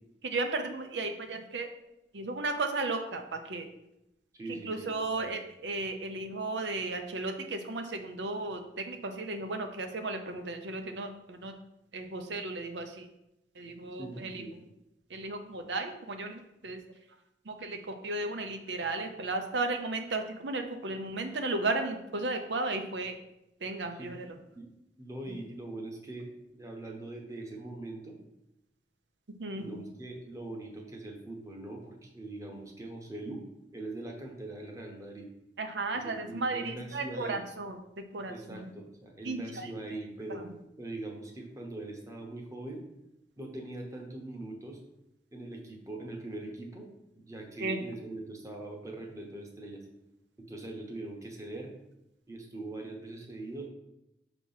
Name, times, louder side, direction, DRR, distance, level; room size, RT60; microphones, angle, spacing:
voice 1, 0.2-1.7 2.1-3.7 4.5-8.6 8.9-11.5 11.9-13.1 13.6-14.4 15.1-16.8 17.5-23.2 23.6-24.3 29.4-29.8 35.6-37.8 38.1-38.7 39.2-39.7 40.3-40.4 47.6-47.8, right 2 dB, 80° right, 6 dB, 0.7 m, -34 dB
voice 2, 4.3-4.9 5.1-5.3 14.0-14.5 24.0-24.1 24.5-24.7 25.0-28.2 29.5-33.4 33.7-35.3 35.9-37.4 38.3-40.5 40.8-42.8 43.4-44.8 45.3-46.9 47.1-49.9 50.4-51.7 52.3-53.7, right 2 dB, 20° right, 1 dB, 1.0 m, -42 dB
6.0 x 3.0 x 5.6 m, 0.88 s
head